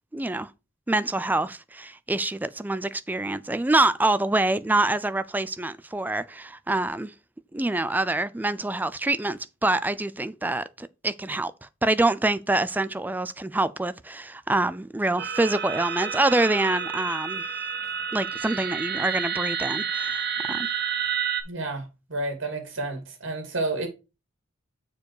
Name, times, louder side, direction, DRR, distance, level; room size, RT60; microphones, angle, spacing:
voice 1, 0.1-0.5 0.9-7.1 7.5-11.5 11.8-17.5 18.1-20.7, right 2 dB, 10° right, 0.3 m, -26 dB
sound 1, 15.2-21.4, right 7 dB, 50° right, 1.0 m, -30 dB
voice 2, 21.5-23.9, right 2 dB, 65° right, 2.5 m, -30 dB
6.8 x 4.8 x 4.7 m
head